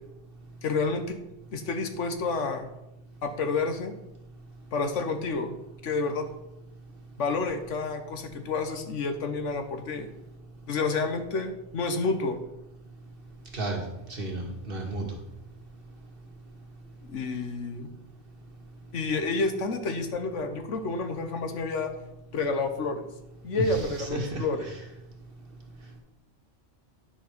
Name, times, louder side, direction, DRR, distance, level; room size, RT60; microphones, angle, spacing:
voice 1, 0.6-1.2 1.5-2.7 3.2-3.9 4.7-5.6 5.8-6.3 7.2-10.1 10.7-12.4 17.0-17.9 18.9-21.9 22.3-23.1 23.4-24.7, left 3 dB, 75° left, 7 dB, 1.4 m, -29 dB
voice 2, 14.1-15.1 23.6-24.8, right 2 dB, 45° right, 0 dB, 1.9 m, -33 dB
10.5 x 4.8 x 6.0 m, 0.91 s
omnidirectional pair, 1.3 m